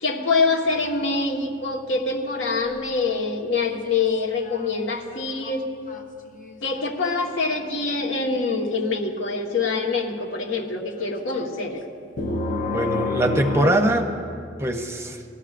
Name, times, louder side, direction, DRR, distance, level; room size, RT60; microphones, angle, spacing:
voice 1, 0.0-5.7 6.6-11.8, left 4 dB, 80° left, -1 dB, 1.3 m, -25 dB
sound 1, 0.7-2.9 3.4-4.1 4.4-4.8 5.1-7.1 8.5-8.7 11.0-11.5 12.2-13.7, left 2 dB, 45° left, 0.8 m, -30 dB
voice 2, 12.7-14.1 14.6-15.2, right 1 dB, 15° right, 4 dB, 0.7 m, -22 dB
18.5 x 13.0 x 2.5 m, 2.4 s
head